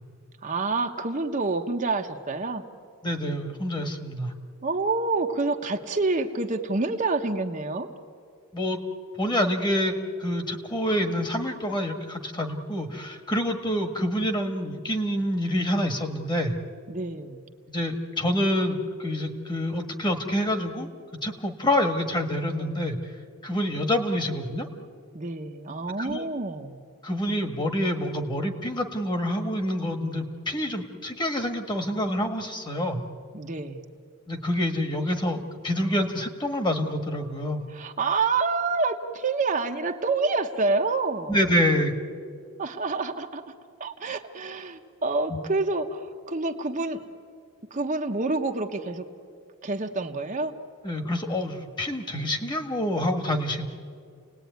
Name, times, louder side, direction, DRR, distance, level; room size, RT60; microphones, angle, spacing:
voice 1, 0.4-2.6 4.6-7.9 16.9-17.4 25.1-26.8 33.3-33.8 37.7-41.4 42.6-47.1 47.7-49.1 49.6-50.5, right 3 dB, 35° right, 4 dB, 1.0 m, -28 dB
voice 2, 3.0-4.3 8.5-8.8 9.2-9.9 10.2-16.5 17.7-20.9 21.2-23.0 23.4-24.7 26.0-26.2 27.0-33.0 34.3-37.7 41.3-41.9 45.3-45.4 50.8-53.7, left 1 dB, 20° left, 6 dB, 1.6 m, -27 dB
30.0 x 19.0 x 9.4 m, 2.2 s
head